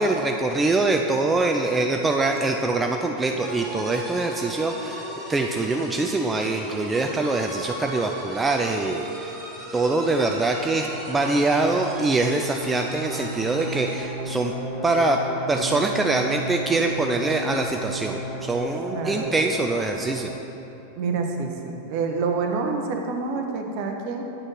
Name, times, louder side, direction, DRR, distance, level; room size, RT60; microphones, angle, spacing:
voice 1, 0.0-9.4 9.7-14.5 14.8-15.2 15.5-20.3, right 2 dB, 10° right, 3 dB, 0.3 m, -24 dB
sound 1, 3.4-14.2, right 1 dB, 30° right, 1.6 m, -37 dB
sound 2, 9.5-20.3, right 1 dB, 10° left, 1.7 m, -34 dB
voice 2, 18.9-19.3 20.9-24.2, right 4 dB, 45° right, 3 dB, 0.7 m, -27 dB
8.8 x 4.3 x 4.6 m, 2.9 s
figure-of-eight pair, 90°, 0 cm